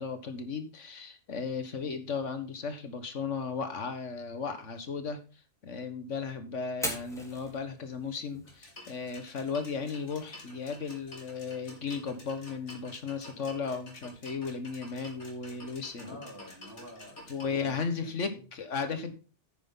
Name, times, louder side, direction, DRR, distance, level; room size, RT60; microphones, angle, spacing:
voice 1, 0.0-5.2 5.6-16.2 17.3-19.1, left 5 dB, 90° left, 8 dB, 1.8 m, -35 dB
Fire, 6.7-14.7, equal, ahead, 3.7 m, -45 dB
sound 1, 8.4-17.4, left 1 dB, 75° left, 4.0 m, -50 dB
voice 2, 16.0-18.5, left 1 dB, 20° right, 1 dB, 3.4 m, -49 dB
10.0 x 9.3 x 3.9 m, 0.34 s
omnidirectional pair, 1.2 m